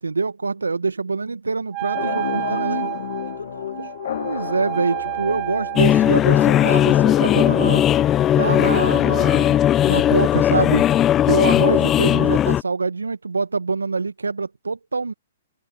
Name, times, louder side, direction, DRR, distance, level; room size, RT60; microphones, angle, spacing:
voice 1, 0.0-2.9 4.2-7.8 8.4-9.6 9.8-10.9 11.2-15.1, right 4 dB, 80° right, 1.5 m, -25 dB
Wind instrument woodwind instrument, 1.7-6.3, right 24 dB, 30° right, 0.5 m, -30 dB
voice 2, 1.9-3.9, left 4 dB, 75° left, 3.7 m, -38 dB
sound 1, 1.9-11.4, left 10 dB, 55° left, 1.4 m, -31 dB
sound 2, 5.8-12.6, left 11 dB, 20° left, 0.6 m, -17 dB
figure-of-eight pair, 120°, 0 cm